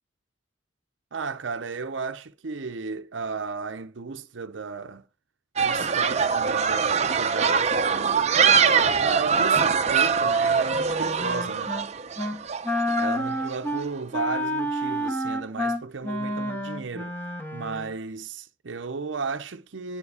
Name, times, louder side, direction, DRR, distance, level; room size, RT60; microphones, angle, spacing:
voice 1, 1.1-5.1 5.6-11.8 13.0-17.1 17.5-20.0, right 4 dB, 85° right, 0.7 m, -34 dB
sound 1, 5.6-13.6, right 6 dB, 35° right, 0.7 m, -23 dB
Wind instrument woodwind instrument, 10.7-11.9 12.2-12.4 12.6-17.9, left 1 dB, 10° left, 1.5 m, -29 dB
9.8 x 7.4 x 4.8 m
head